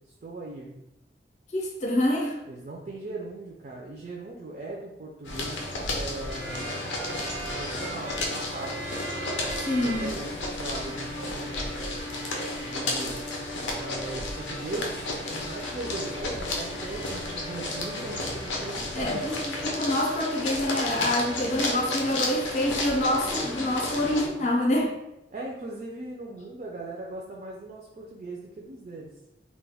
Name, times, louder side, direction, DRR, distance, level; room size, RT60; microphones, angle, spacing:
voice 1, 0.1-0.7 2.5-6.8 7.5-8.8 9.7-11.8 12.6-13.4 13.7-19.3 23.9-24.5 25.3-29.1, right 2 dB, 45° right, -2 dB, 0.3 m, -39 dB
voice 2, 1.5-2.4 9.7-10.0 18.9-19.3 19.6-24.9, left 1 dB, 40° left, 0 dB, 0.5 m, -26 dB
sound 1, 5.2-24.3, left 2 dB, 90° left, 0.5 m, -32 dB
sound 2, 6.3-10.3 10.6-18.3, right 2 dB, 90° right, 0.8 m, -41 dB
2.2 x 2.1 x 3.3 m, 0.89 s
head